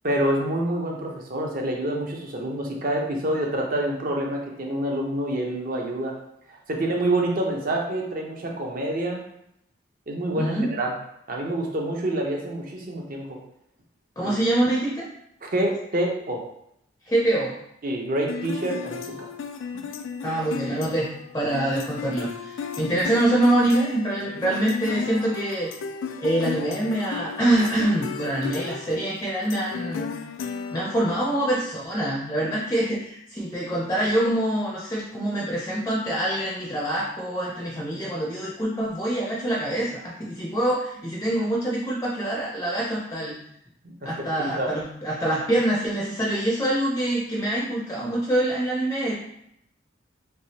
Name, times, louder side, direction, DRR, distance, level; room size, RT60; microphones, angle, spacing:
voice 1, 0.0-6.1 6.5-9.2 10.1-10.9 11.3-13.4 14.2-14.3 15.4-16.4 17.8-19.3 19.7-19.8 44.0-44.1 44.4-44.7, right 1 dB, 45° right, 0 dB, 0.6 m, -27 dB
voice 2, 10.3-10.7 14.2-15.1 17.0-17.5 20.2-21.1 21.3-25.7 26.2-30.1 30.7-43.3 44.0-49.1, right 1 dB, 15° left, -5 dB, 0.5 m, -25 dB
sound 1, 18.3-31.5, left 6 dB, 80° left, 0.3 m, -34 dB
3.4 x 3.1 x 2.8 m, 0.76 s
head